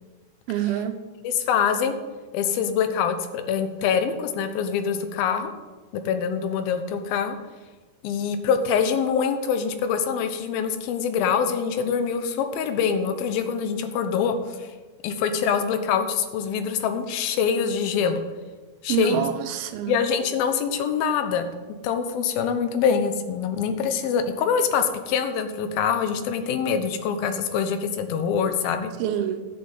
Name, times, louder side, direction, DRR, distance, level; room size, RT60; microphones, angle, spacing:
voice 1, 0.5-1.0 18.9-20.0 29.0-29.4, right 10 dB, 80° right, 8 dB, 2.6 m, -26 dB
voice 2, 1.2-2.0 2.3-5.5 5.9-7.4 8.0-14.7 15.0-18.2 18.8-19.2 19.9-21.5 21.8-28.9, left 7 dB, 80° left, 8 dB, 2.7 m, -24 dB
11.0 x 7.4 x 8.1 m, 1.3 s
omnidirectional pair, 4.3 m